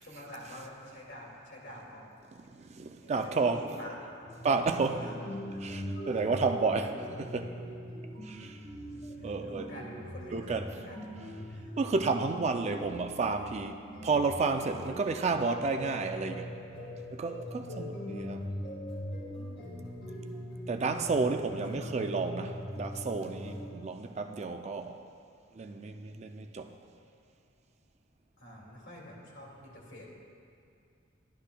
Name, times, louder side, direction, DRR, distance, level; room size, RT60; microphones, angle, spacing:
voice 1, 0.0-2.2 3.2-4.3 5.0-5.2 5.5-5.7 6.1-6.2 8.9-11.0 11.5-11.8 17.7-18.0 21.2-21.9 28.4-30.1, equal, 65° left, -3 dB, 2.2 m, -47 dB
voice 2, 2.3-3.8 4.4-5.1 5.6-7.6 8.2-8.7 9.2-9.7 10.3-10.8 11.8-16.6 17.1-18.5 20.7-25.0 25.5-26.8, right 4 dB, 35° right, 6 dB, 0.4 m, -31 dB
sound 1, 4.2-23.7, equal, 45° left, 1.5 m, -42 dB
11.5 x 11.5 x 2.2 m, 2.4 s
head